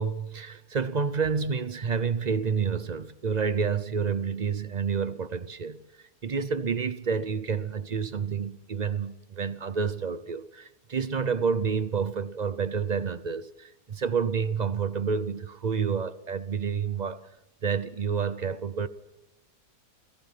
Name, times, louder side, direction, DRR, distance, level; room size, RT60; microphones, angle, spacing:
voice 1, 0.0-5.8 6.2-17.2 17.6-18.9, right 6 dB, 45° right, 0.6 m, -29 dB
28.5 x 17.0 x 6.0 m
omnidirectional pair, 1.8 m